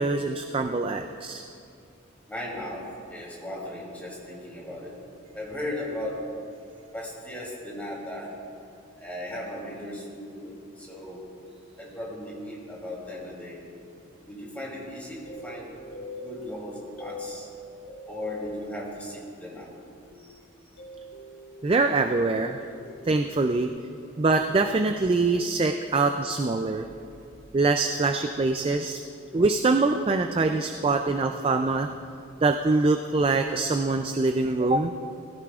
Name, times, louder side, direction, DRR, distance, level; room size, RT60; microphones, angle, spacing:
voice 1, 0.0-1.4 21.6-22.6 23.0-23.7 24.2-26.9 27.5-29.0 29.3-31.9 32.4-34.9, right 3 dB, 25° right, 6 dB, 0.3 m, -24 dB
voice 2, 2.3-5.0 5.3-6.2 6.9-8.3 9.0-11.2 11.8-13.6 14.3-15.8 16.2-17.5 18.1-19.7 20.2-20.4 24.0-24.1 29.3-29.4 31.3-32.0, left 1 dB, 10° left, -5 dB, 2.9 m, -37 dB
sound 1, 15.2-19.5 20.0-23.7, equal, 75° left, 3.1 m, -43 dB
17.5 x 16.0 x 2.4 m, 2.5 s
head